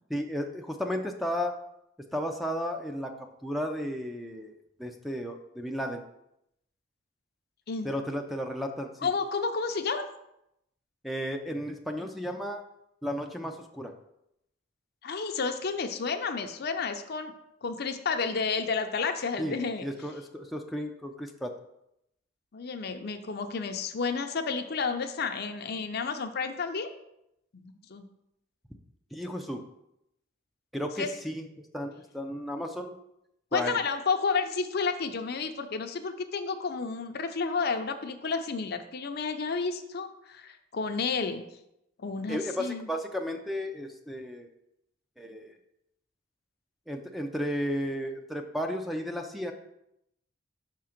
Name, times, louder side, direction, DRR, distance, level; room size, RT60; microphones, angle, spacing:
voice 1, 0.1-1.5 2.1-4.5 4.8-6.0 7.8-9.1 11.0-12.6 13.0-13.9 19.4-21.5 29.1-29.6 30.7-33.0 33.5-33.8 42.3-44.5 45.2-45.6 46.9-49.5, equal, ahead, 4 dB, 0.4 m, -34 dB
voice 2, 9.0-10.1 15.0-17.3 17.6-19.8 22.5-26.9 27.5-28.1 31.0-31.1 33.5-41.4 42.0-42.9, left 5 dB, 55° left, 7 dB, 0.6 m, -31 dB
5.7 x 3.7 x 5.8 m, 0.81 s
head